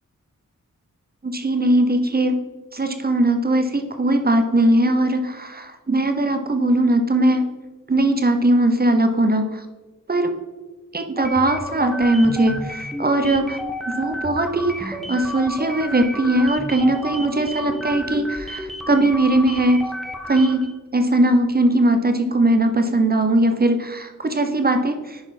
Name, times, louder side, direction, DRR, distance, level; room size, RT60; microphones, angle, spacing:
voice 1, 1.2-2.4 2.7-7.5 7.9-9.6 10.1-10.3 10.9-13.6 13.9-19.8 20.3-20.7 20.9-25.2, right 1 dB, 30° right, 7 dB, 0.8 m, -19 dB
sound 1, 11.2-20.7, equal, ahead, 0.8 m, -32 dB
10.5 x 4.3 x 4.1 m, 1.2 s
cardioid pair, 60°, 33 cm